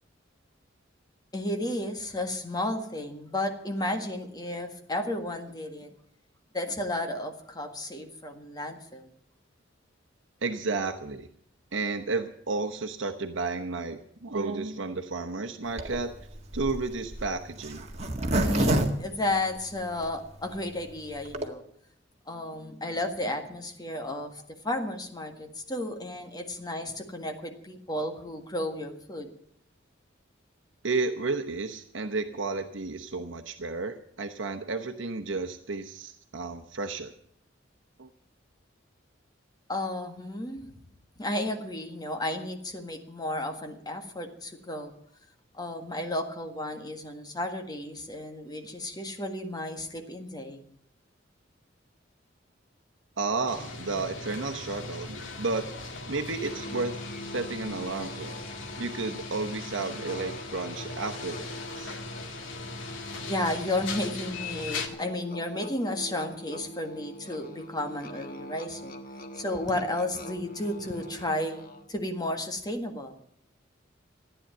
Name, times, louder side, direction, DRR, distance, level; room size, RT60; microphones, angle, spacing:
voice 1, 1.3-5.9 6.5-9.1 18.4-21.6 22.3-29.3 39.7-40.7 41.2-44.9 45.5-50.6 63.3-69.0 69.3-71.6 71.9-73.1, left 1 dB, 20° left, 5 dB, 1.7 m, -33 dB
voice 2, 10.4-11.3 11.7-16.1 16.5-17.8 30.8-37.1 38.0-38.1 53.2-55.7 56.1-57.0 57.3-58.4 58.8-62.0, right 3 dB, 75° right, 5 dB, 1.0 m, -32 dB
Zipper (clothing), 15.7-20.0 20.5-20.6 20.8-20.9 21.1-21.5, right 1 dB, 35° right, 1.8 m, -28 dB
sound 1, 53.5-64.9, left 3 dB, 80° left, 1.9 m, -39 dB
Musical instrument, 56.4-72.0, left 1 dB, 50° left, 1.5 m, -44 dB
14.5 x 9.9 x 9.0 m, 0.68 s
head